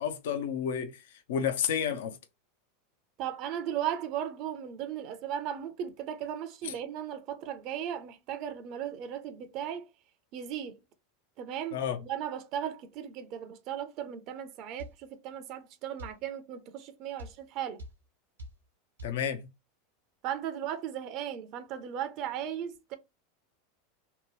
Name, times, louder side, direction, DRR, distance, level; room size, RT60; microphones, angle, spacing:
voice 1, 0.0-2.2 6.6-6.7 11.7-12.0 19.0-19.5, left 8 dB, 65° left, 0.5 m, -31 dB
voice 2, 3.2-9.9 10.3-10.8 11.4-17.8 20.2-23.0, right 10 dB, 50° right, 0.5 m, -36 dB
sound 1, 14.8-15.0 16.0-16.2 17.2-17.4 17.8-18.0 18.4-18.6 19.0-19.2, equal, 85° right, 0.7 m, -43 dB
2.8 x 2.2 x 3.1 m
figure-of-eight pair, 85°, 0 cm